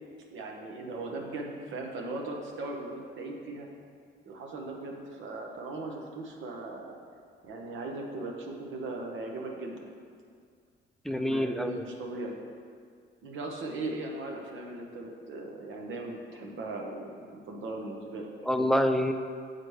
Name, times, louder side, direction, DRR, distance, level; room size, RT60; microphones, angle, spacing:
voice 1, 0.3-3.7 4.2-6.9 7.4-9.9 11.1-12.4 13.2-18.3, right 2 dB, 75° right, 1 dB, 0.9 m, -38 dB
voice 2, 11.1-11.8 18.5-19.1, equal, ahead, 6 dB, 0.3 m, -26 dB
7.8 x 4.1 x 3.2 m, 2.1 s
cardioid pair, 90°, 20 cm